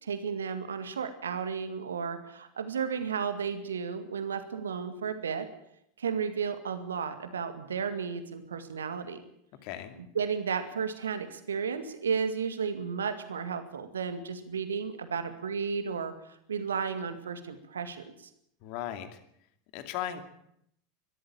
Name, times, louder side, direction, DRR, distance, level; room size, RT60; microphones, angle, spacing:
voice 1, 0.0-5.5 6.0-9.2 10.1-16.1 16.5-18.1, right 6 dB, 75° right, 9 dB, 2.1 m, -33 dB
voice 2, 9.6-9.9 18.6-19.2 19.7-20.2, left 11 dB, 50° left, 8 dB, 2.5 m, -36 dB
22.5 x 13.5 x 8.7 m, 0.73 s
figure-of-eight pair, 80°, 0 cm